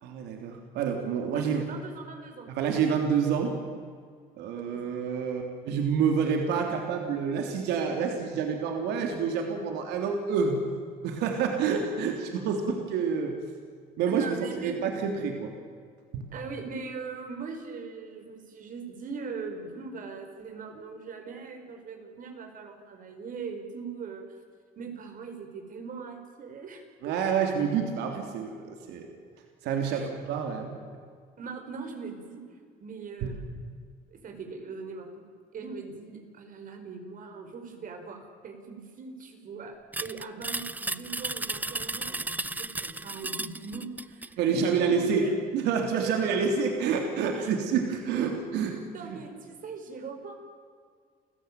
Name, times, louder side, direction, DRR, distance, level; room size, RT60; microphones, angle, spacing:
voice 1, 0.0-1.6 2.5-3.5 4.4-10.6 11.0-13.4 14.0-14.4 14.6-15.5 16.1-16.2 27.0-29.1 29.6-30.8 44.4-45.2 45.5-49.2, right 6 dB, 90° right, 3 dB, 3.3 m, -28 dB
voice 2, 1.2-2.5 3.2-3.3 4.6-4.9 14.1-14.8 16.3-24.2 24.8-27.1 29.9-30.1 31.4-32.4 32.8-33.6 34.1-35.2 35.5-45.3 46.0-46.1 47.3-47.5 48.9-50.3, right 4 dB, 55° right, 5 dB, 5.0 m, -41 dB
sound 1, 39.9-44.4, right 2 dB, 10° right, 0.6 m, -34 dB
29.0 x 16.0 x 9.3 m, 2.1 s
cardioid pair, 110°, 17 cm